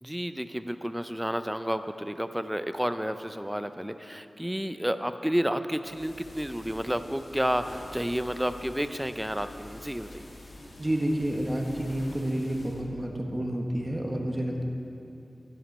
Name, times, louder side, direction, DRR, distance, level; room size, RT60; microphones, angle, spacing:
voice 1, 0.0-10.3, equal, 5° right, 10 dB, 0.5 m, -31 dB
sound 1, 5.8-12.9, left 1 dB, 65° left, 1.6 m, -47 dB
voice 2, 10.8-14.6, right 1 dB, 25° right, 1 dB, 1.1 m, -29 dB
11.5 x 10.0 x 5.2 m, 2.8 s
wide cardioid pair, 75°, 0 cm